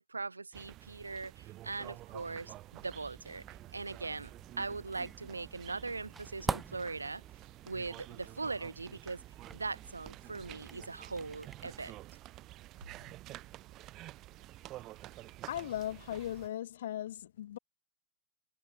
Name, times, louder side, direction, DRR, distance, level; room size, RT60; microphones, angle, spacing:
voice 1, 0.0-3.4 3.7-7.2 7.7-9.2 9.5-12.0, right 3 dB, 80° right, 1.1 m, -40 dB
sound 1, 0.5-16.5, right 16 dB, 35° right, 1.1 m, -50 dB
sound 2, 2.8-12.0, right 4 dB, 15° right, 0.7 m, -46 dB
voice 2, 15.5-17.6, left 12 dB, 60° left, 0.3 m, -38 dB
figure-of-eight pair, 90°, 0 cm